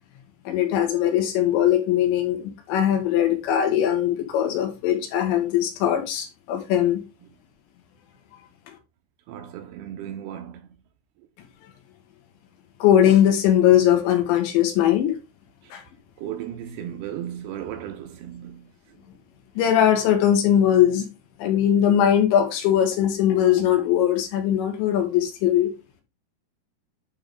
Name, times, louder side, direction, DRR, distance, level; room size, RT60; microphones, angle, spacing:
voice 1, 0.5-7.0 12.8-15.2 15.7-15.8 19.6-21.1 21.4-25.7, left 10 dB, 90° left, 3.8 m, -20 dB
voice 2, 9.3-10.7 15.6-15.7 16.2-18.7, right 10 dB, 80° right, 2.5 m, -35 dB
11.0 x 3.8 x 3.5 m
omnidirectional pair, 5.2 m